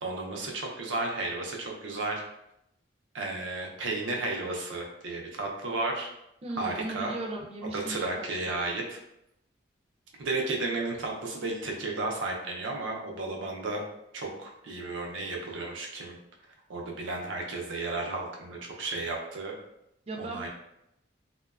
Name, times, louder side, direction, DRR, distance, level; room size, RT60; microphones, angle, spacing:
voice 1, 0.0-2.2 3.1-6.1 6.6-7.1 7.7-9.0 10.2-13.8 14.1-16.2 16.7-19.5 20.2-20.5, right 2 dB, 85° right, 0 dB, 0.5 m, -33 dB
voice 2, 6.4-8.7 20.1-20.5, right 2 dB, 30° right, 0 dB, 0.4 m, -37 dB
2.8 x 2.2 x 2.3 m, 0.82 s
head